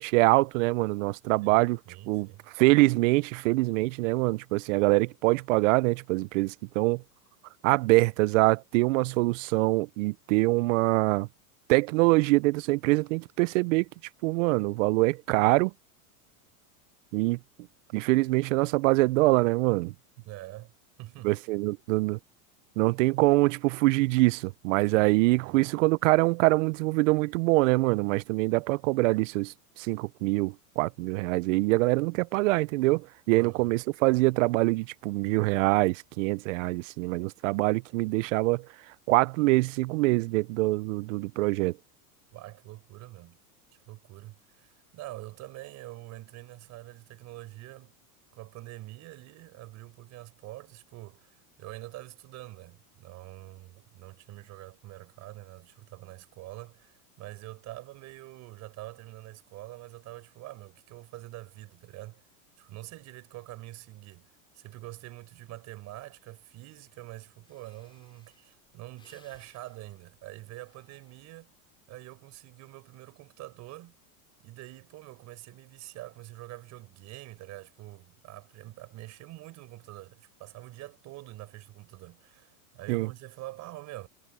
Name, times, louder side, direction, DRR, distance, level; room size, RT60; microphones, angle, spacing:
voice 1, 0.0-1.8 2.1-2.3 2.5-7.0 7.6-11.3 11.7-13.9 14.2-15.7 17.1-17.4 17.9-19.9 21.2-22.2 22.8-38.7 39.1-41.8 82.9-83.1, right 22 dB, 55° right, 0.5 m, -24 dB
voice 2, 1.4-2.5 20.2-20.7 21.0-21.3 24.9-25.7 33.3-33.7 42.3-43.4 43.7-47.9 48.3-62.2 62.6-71.5 71.9-74.0 74.4-84.1, right 17 dB, 35° right, 5.0 m, -45 dB
Breathing, 67.4-71.7 72.1-72.5, left 4 dB, 10° left, 4.8 m, -65 dB
supercardioid pair, 155°, 46 cm